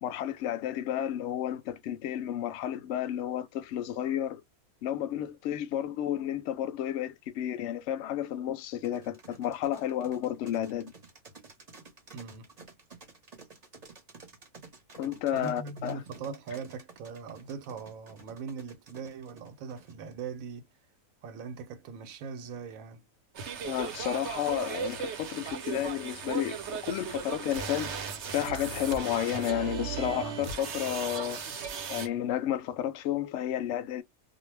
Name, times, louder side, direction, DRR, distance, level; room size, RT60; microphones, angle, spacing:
voice 1, 0.0-4.4 4.8-10.9 15.0-16.0 23.6-31.4 31.9-34.0, left 11 dB, 65° left, 0.8 m, -32 dB
sound 1, 8.8-20.3, right 4 dB, 35° right, 0.8 m, -51 dB
voice 2, 12.1-12.5 15.3-20.7 21.2-23.0, right 5 dB, 75° right, 1.0 m, -40 dB
sound 2, 23.3-32.1, right 7 dB, 60° right, 0.9 m, -37 dB
2.4 x 2.1 x 3.2 m
omnidirectional pair, 1.5 m